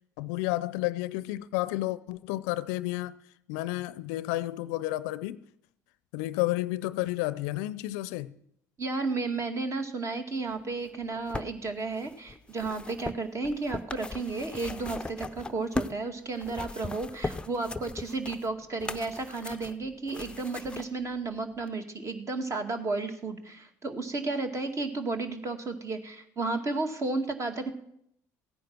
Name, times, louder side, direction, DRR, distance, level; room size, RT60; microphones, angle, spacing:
voice 1, 0.2-3.1 3.5-5.4 6.1-8.4, left 17 dB, 70° left, 0.5 m, -31 dB
voice 2, 8.8-27.7, right 3 dB, 35° right, 2.2 m, -33 dB
sound 1, 10.9-16.0 16.4-20.9 21.7-21.8, left 2 dB, 10° left, 0.7 m, -38 dB
16.0 x 9.3 x 6.0 m
hypercardioid pair, 65°, 9 cm